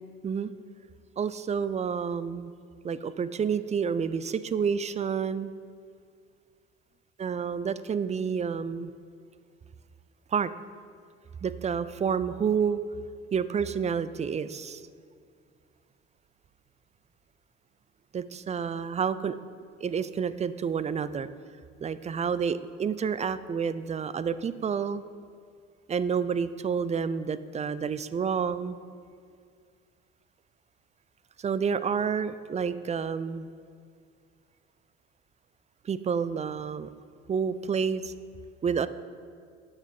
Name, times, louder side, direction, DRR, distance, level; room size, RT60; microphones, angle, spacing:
voice 1, 1.2-2.5 2.8-5.5 7.2-8.9 10.3-10.5 11.4-12.8 13.3-14.8 18.1-19.4 19.8-21.3 21.8-25.0 25.9-28.8 31.4-33.5 35.8-36.9 37.3-38.1 38.6-38.9, right 6 dB, 25° right, 15 dB, 0.4 m, -29 dB
9.0 x 6.2 x 5.3 m, 2.2 s
hypercardioid pair, 70°, 31 cm